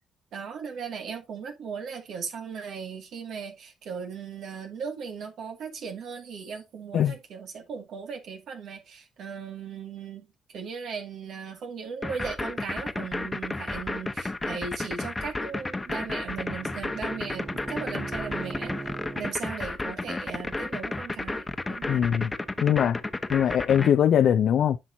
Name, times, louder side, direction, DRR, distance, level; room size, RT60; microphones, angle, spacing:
voice 1, 0.3-18.7 19.2-22.0, right 6 dB, 70° right, 2.1 m, -37 dB
sound 1, 12.0-23.9, left 2 dB, 20° left, 1.0 m, -32 dB
Bowed string instrument, 15.3-19.4, right 3 dB, 30° right, 0.6 m, -41 dB
voice 2, 21.9-22.3 22.6-23.0 23.3-24.8, left 9 dB, 70° left, 0.5 m, -21 dB
9.8 x 5.9 x 2.7 m
supercardioid pair, 55°, 0 cm